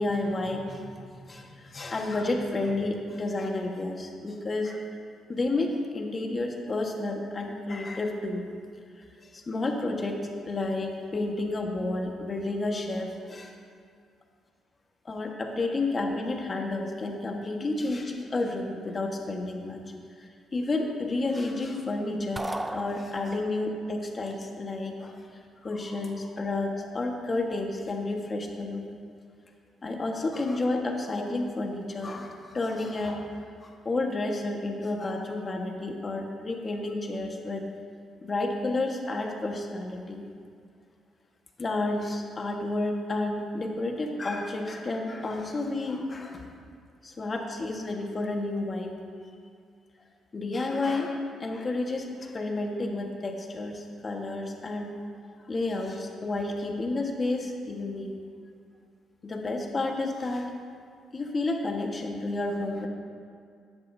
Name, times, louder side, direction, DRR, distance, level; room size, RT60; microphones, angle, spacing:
voice 1, 0.0-4.8 5.3-8.5 9.2-13.5 15.0-19.8 20.2-22.5 22.7-25.3 25.6-28.9 29.8-37.6 38.2-40.2 41.6-46.4 47.0-48.9 50.3-54.9 55.3-58.1 59.2-60.5 61.1-62.9, left 2 dB, 35° left, 1 dB, 1.6 m, -31 dB
sound 1, 22.4-23.7, right 1 dB, 10° right, 0.6 m, -35 dB
15.0 x 10.5 x 2.8 m, 2.2 s
cardioid pair, 90°, 0 cm